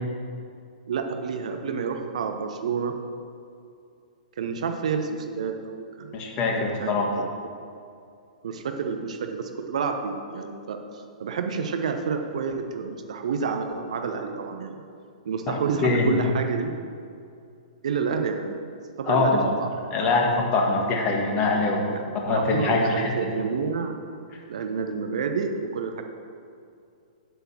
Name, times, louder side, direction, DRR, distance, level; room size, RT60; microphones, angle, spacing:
voice 1, 0.9-2.9 4.4-6.2 6.5-7.3 8.4-14.8 15.2-16.7 17.8-19.7 20.0-20.1 21.7-22.0 22.3-23.9 24.5-26.0, right 5 dB, 55° right, 5 dB, 0.9 m, -29 dB
voice 2, 6.1-7.2 15.5-16.1 19.0-19.5 19.9-21.9 22.2-23.1, left 3 dB, 25° left, 1 dB, 1.6 m, -23 dB
8.1 x 8.1 x 6.2 m, 2.4 s
figure-of-eight pair, 115°, 4 cm